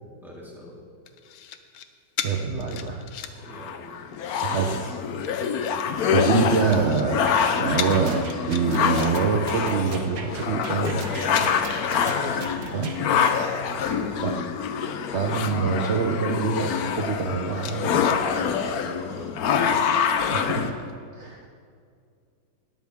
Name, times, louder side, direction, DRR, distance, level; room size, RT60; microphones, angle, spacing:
voice 1, 0.2-0.7 3.4-4.0 5.6-6.1 11.0-12.3 13.4-14.3 18.2-19.4, equal, ahead, -7 dB, 3.7 m, -40 dB
sound 1, 1.1-1.9 2.2-3.5 3.9-4.4 5.1-5.9 6.5-7.1 7.4-7.5 7.8-8.0 8.3-9.4 9.8-11.8 12.2-12.4 12.7-14.3 14.6-15.0 15.6-15.7 15.9-16.6 17.1-17.2 17.5-18.2 19.7-20.4 20.8-20.9, left 9 dB, 85° left, 1.6 m, -38 dB
voice 2, 2.2-3.0 4.4-5.0 6.1-7.2 7.6-11.0 12.7-12.9 13.8-14.4 15.1-18.0 20.3-20.8 21.1-21.6, right 5 dB, 55° right, 1 dB, 0.7 m, -25 dB
sound 2, 3.5-20.7, left 7 dB, 60° left, 1.0 m, -26 dB
sound 3, 7.3-13.0, right 5 dB, 80° right, 2.1 m, -37 dB
19.5 x 12.5 x 3.6 m, 2.2 s
omnidirectional pair, 2.2 m